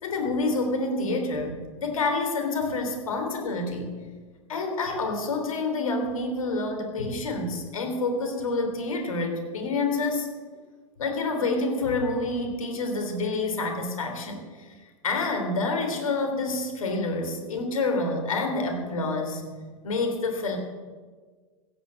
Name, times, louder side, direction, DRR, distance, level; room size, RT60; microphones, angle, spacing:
voice 1, 0.0-3.9 4.5-10.3 11.0-14.7 15.0-19.4 19.8-20.6, left 3 dB, 75° left, 4 dB, 3.5 m, -28 dB
15.0 x 9.2 x 7.6 m, 1.5 s
hypercardioid pair, 95°, 18 cm